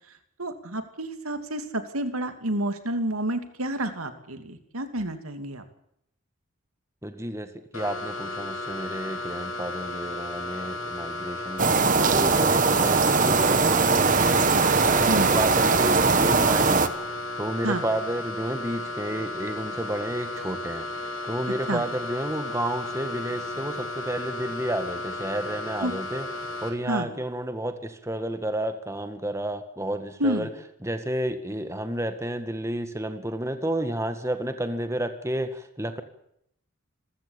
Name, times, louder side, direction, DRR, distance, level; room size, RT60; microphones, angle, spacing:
voice 1, 0.4-5.6 15.1-15.3 17.6-17.8 21.7-21.8 25.8-25.9 26.9-27.1 30.2-30.5, right 1 dB, 90° right, 8 dB, 2.8 m, -29 dB
voice 2, 7.0-16.9 17.4-20.9 21.2-26.3 26.6-30.5 30.8-36.0, right 1 dB, 15° right, 8 dB, 1.7 m, -31 dB
sound 1, 7.7-26.7, left 2 dB, 70° left, 7.0 m, -34 dB
sound 2, 11.6-16.9, right 4 dB, 40° right, 1.4 m, -20 dB
27.0 x 15.0 x 8.9 m, 0.75 s
head